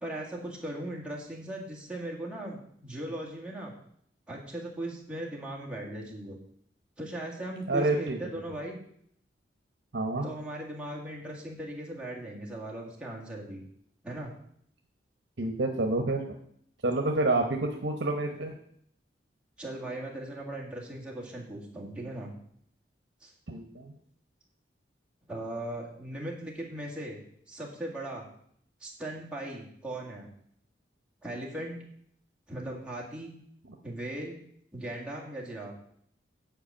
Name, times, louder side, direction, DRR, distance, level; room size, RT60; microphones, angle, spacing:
voice 1, 0.0-3.7 4.3-6.4 7.0-8.8 10.2-13.6 14.0-14.3 19.6-22.4 23.2-23.3 25.3-27.2 27.5-28.3 28.8-30.3 31.2-31.8 32.5-33.3 33.8-34.4 34.7-35.7, right 1 dB, 5° right, -3 dB, 1.9 m, -38 dB
voice 2, 7.7-8.2 9.9-10.3 15.4-16.2 16.8-18.5 23.5-23.9, right 2 dB, 75° right, 3 dB, 1.0 m, -28 dB
8.0 x 5.1 x 7.2 m, 0.66 s
head